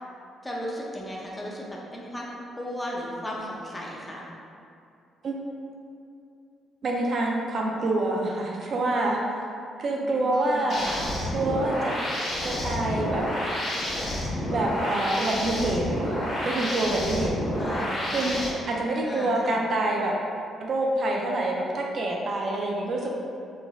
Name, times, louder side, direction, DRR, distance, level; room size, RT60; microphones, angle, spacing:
voice 1, 0.4-4.3 10.0-11.0 17.6-18.4 18.9-19.6, equal, 15° left, -3 dB, 0.5 m, -36 dB
voice 2, 5.2-5.7 6.8-9.2 9.8-10.9 11.3-12.0 12.4-13.2 14.5-16.2 16.4-17.4 18.1-20.2 20.6-23.1, right 2 dB, 55° right, -1 dB, 0.3 m, -26 dB
sound 1, 10.7-18.5, equal, 55° left, 0.9 m, -29 dB
3.1 x 2.4 x 2.3 m, 2.6 s
cardioid pair, 90°, 0 cm